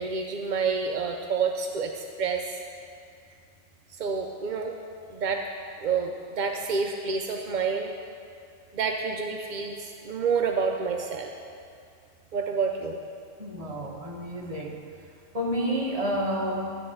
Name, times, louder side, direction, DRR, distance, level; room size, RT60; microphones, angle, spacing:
voice 1, 0.0-2.6 4.0-4.7 5.1-5.4 5.8-7.9 8.7-11.3 12.3-13.0, right 5 dB, 60° right, 3 dB, 0.5 m, -28 dB
voice 2, 13.4-14.8 15.3-16.8, equal, 30° right, -2 dB, 1.3 m, -30 dB
12.5 x 4.1 x 7.7 m, 2.3 s
omnidirectional pair, 1.3 m